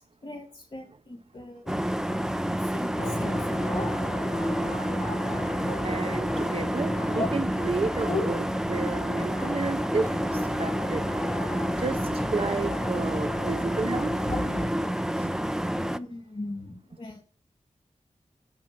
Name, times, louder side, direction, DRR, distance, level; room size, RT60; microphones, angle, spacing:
voice 1, 0.0-4.0 7.1-7.3 8.0-8.3 14.3-14.4 15.8-17.2, left 2 dB, 45° left, 5 dB, 2.5 m, -37 dB
sound 1, 1.7-16.0, equal, 5° right, 0.5 m, -29 dB
sound 2, 3.0-14.7, left 2 dB, 85° left, 2.1 m, -37 dB
voice 2, 5.8-11.0 11.8-14.1 15.2-15.3, right 3 dB, 50° right, 9 dB, 0.8 m, -32 dB
7.4 x 7.3 x 6.1 m, 0.42 s
wide cardioid pair, 80°, 12 cm